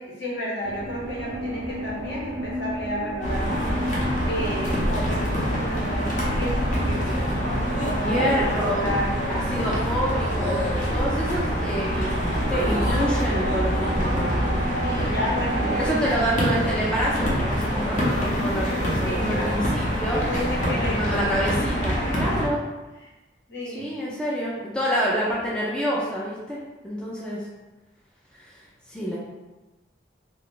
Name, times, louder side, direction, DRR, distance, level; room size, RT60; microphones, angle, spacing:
voice 1, 0.0-3.7 4.2-7.3 7.7-8.5 8.8-9.1 14.8-16.3 19.0-19.5 20.3-21.2 21.8-22.1 23.0-23.1 23.5-23.9, equal, 65° left, -4 dB, 0.9 m, -32 dB
sound 1, 0.6-16.0, right 1 dB, 55° right, 0.4 m, -33 dB
sound 2, 3.2-22.5, equal, 40° left, 0.7 m, -25 dB
voice 2, 8.0-8.8 9.3-10.6 10.9-14.5 15.8-20.2 20.7-22.6 23.7-27.4 28.3-28.6 28.9-29.2, equal, 5° left, -6 dB, 0.4 m, -27 dB
2.8 x 2.3 x 3.7 m, 1.1 s
head